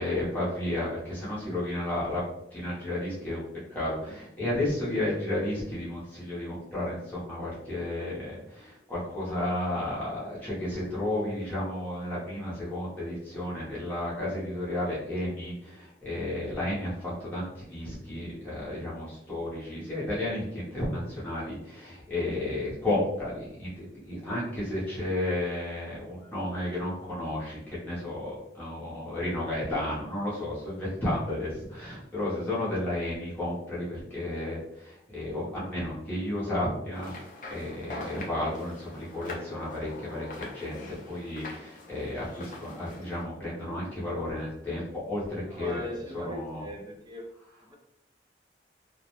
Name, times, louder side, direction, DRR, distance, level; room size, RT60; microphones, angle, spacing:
voice 1, 0.0-3.4 3.7-37.1 37.5-45.9 46.1-46.7, left 1 dB, 10° left, -8 dB, 0.7 m, -32 dB
sound 1, 36.9-43.2, left 2 dB, 45° left, 0.5 m, -43 dB
voice 2, 45.5-47.2 47.6-47.8, right 1 dB, 25° right, 1 dB, 0.4 m, -39 dB
2.3 x 2.1 x 2.9 m, 0.79 s
head